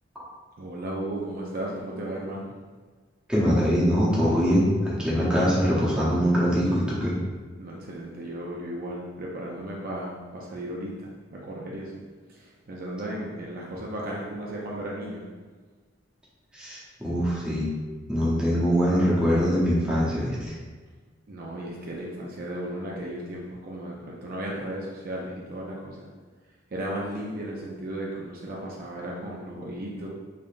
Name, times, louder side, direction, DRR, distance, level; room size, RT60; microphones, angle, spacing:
voice 1, 0.6-2.5 7.6-10.9 11.3-12.0 12.7-15.2 21.3-26.1 26.7-30.1, right 1 dB, 50° right, -3 dB, 0.5 m, -35 dB
voice 2, 3.3-7.1 16.5-17.7 18.1-20.5, equal, 5° right, -8 dB, 0.8 m, -23 dB
3.6 x 3.3 x 2.5 m, 1.4 s
head